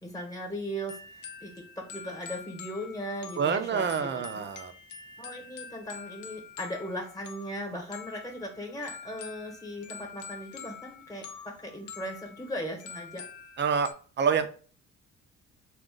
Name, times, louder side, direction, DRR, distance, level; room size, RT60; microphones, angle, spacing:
voice 1, 0.0-4.4 5.2-13.2, equal, 10° left, 1 dB, 1.1 m, -38 dB
sound 1, 0.9-13.9, left 6 dB, 80° left, 0.6 m, -46 dB
voice 2, 3.4-4.7 13.6-13.9 14.2-14.5, right 6 dB, 35° right, 10 dB, 0.5 m, -27 dB
3.8 x 2.4 x 3.7 m, 0.41 s
cardioid pair, 90°, 30 cm